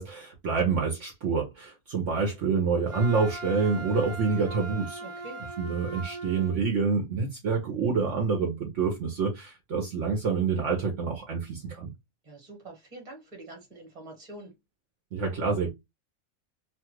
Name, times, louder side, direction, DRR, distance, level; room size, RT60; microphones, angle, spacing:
voice 1, 0.0-5.0 5.6-11.9 15.1-15.7, right 5 dB, 60° right, 1.1 m, -27 dB
Wind instrument woodwind instrument, 2.9-6.6, right 2 dB, 90° right, 1.2 m, -39 dB
voice 2, 5.0-5.4 12.2-14.6, right 2 dB, 25° right, 1.3 m, -45 dB
2.9 x 2.4 x 3.0 m
omnidirectional pair, 1.5 m